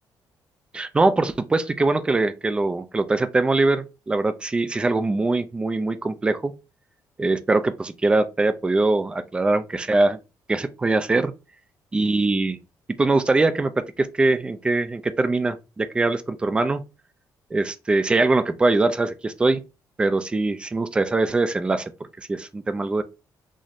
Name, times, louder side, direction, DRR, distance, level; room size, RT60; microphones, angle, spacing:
voice 1, 0.7-6.5 7.2-10.2 10.5-11.3 11.9-12.6 13.0-16.8 17.5-19.6 20.0-21.9 22.2-23.0, right 2 dB, 15° right, 0.3 m, -22 dB
4.1 x 2.6 x 2.9 m
cardioid pair, 170°, 8 cm